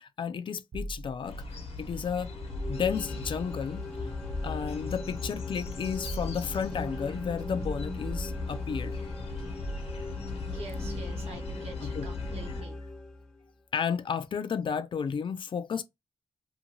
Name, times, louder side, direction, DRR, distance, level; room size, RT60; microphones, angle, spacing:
voice 1, 0.0-2.3 2.7-4.2 4.4-9.0 11.8-12.1 13.7-15.8, left 7 dB, 55° left, 0.4 m, -33 dB
sound 1, 0.7-9.1 9.4-11.3, equal, 40° right, 0.7 m, -42 dB
sound 2, 1.2-12.6, left 3 dB, 85° left, 1.0 m, -38 dB
sound 3, 2.2-13.5, left 2 dB, 5° left, 0.7 m, -41 dB
voice 2, 10.5-12.8, right 2 dB, 80° right, 1.0 m, -46 dB
2.7 x 2.6 x 2.9 m
wide cardioid pair, 110°, 10 cm